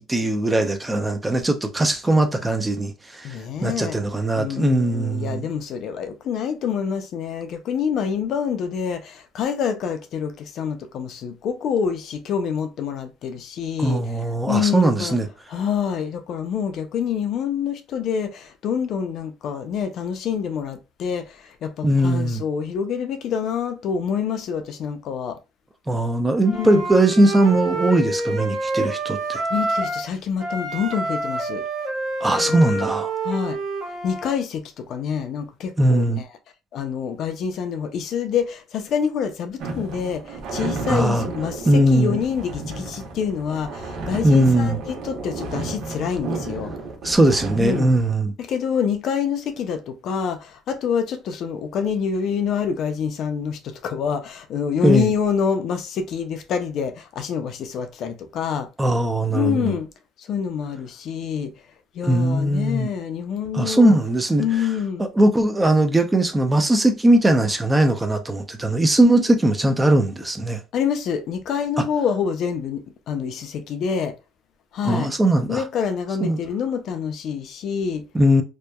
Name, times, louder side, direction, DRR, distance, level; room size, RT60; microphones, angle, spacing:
voice 1, 0.0-5.5 13.8-15.3 21.8-22.4 25.9-29.4 32.2-33.1 35.8-36.2 40.9-41.3 41.7-42.2 44.2-44.8 47.0-48.3 54.8-55.1 58.8-59.8 62.0-62.9 63.5-64.5 65.0-70.6 71.8-71.9 74.8-75.6 76.2-76.4 78.1-78.4, right 1 dB, 10° right, 0.4 m, -19 dB
voice 2, 3.2-4.0 4.3-14.0 14.5-15.2 15.5-25.4 26.5-26.8 29.5-31.6 32.4-32.6 33.2-33.6 34.0-36.2 36.7-46.7 47.6-47.9 48.4-58.7 59.3-59.9 60.2-61.5 61.9-64.0 64.4-65.1 70.7-74.1 74.7-75.1 75.5-78.0, left 7 dB, 55° left, 0.4 m, -26 dB
Wind instrument woodwind instrument, 26.4-30.1 30.4-34.3, right 2 dB, 35° right, 0.8 m, -27 dB
sound 1, 39.6-48.1, right 3 dB, 70° right, 0.8 m, -32 dB
2.7 x 2.1 x 2.2 m
cardioid pair, 120°, 0 cm